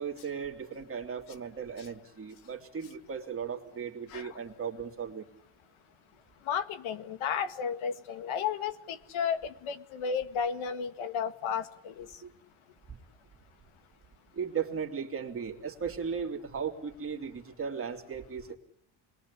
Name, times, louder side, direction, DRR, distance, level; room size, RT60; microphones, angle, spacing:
voice 1, 0.0-5.3 12.2-12.3 12.9-13.0 14.3-18.6, right 6 dB, 25° right, 2 dB, 2.9 m, -36 dB
voice 2, 6.5-12.1, left 7 dB, 70° left, 10 dB, 1.9 m, -33 dB
30.0 x 22.0 x 8.6 m, 0.74 s
cardioid pair, 170°, 50 cm